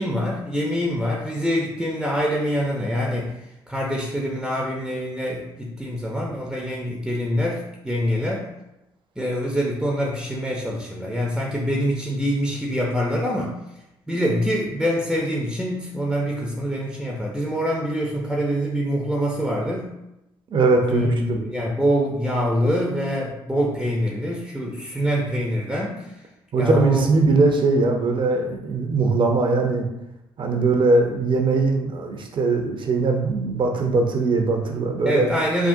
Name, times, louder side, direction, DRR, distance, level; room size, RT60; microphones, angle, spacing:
voice 1, 0.0-3.3 3.7-8.5 9.2-13.5 14.1-19.9 20.9-26.1 26.6-27.1 35.1-35.7, equal, ahead, -2 dB, 0.6 m, -25 dB
voice 2, 20.5-21.4 26.5-29.8 30.4-35.3, right 3 dB, 45° right, 3 dB, 0.6 m, -20 dB
3.5 x 2.3 x 2.6 m, 0.90 s
hypercardioid pair, 55°, 12 cm